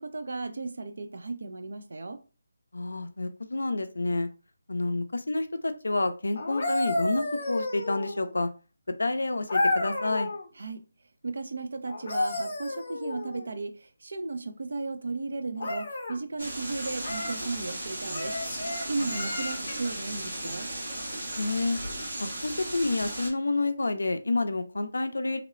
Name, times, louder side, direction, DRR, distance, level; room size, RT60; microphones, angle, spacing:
voice 1, 0.0-2.2 10.6-10.8 11.2-18.4 18.9-20.7, right 3 dB, 60° right, 0.4 m, -35 dB
voice 2, 2.7-4.3 4.7-8.5 9.0-10.3 19.0-19.3 21.4-21.8 22.4-25.4, left 2 dB, 90° left, 0.4 m, -29 dB
sound 1, 6.3-8.3 9.5-10.5 11.9-13.5 15.6-16.2 17.0-17.4 18.1-19.9 21.8-22.0, left 2 dB, 45° left, 0.6 m, -31 dB
sound 2, 16.4-23.3, right 1 dB, 80° right, 1.2 m, -36 dB
2.8 x 2.0 x 2.4 m
figure-of-eight pair, 170°, 0 cm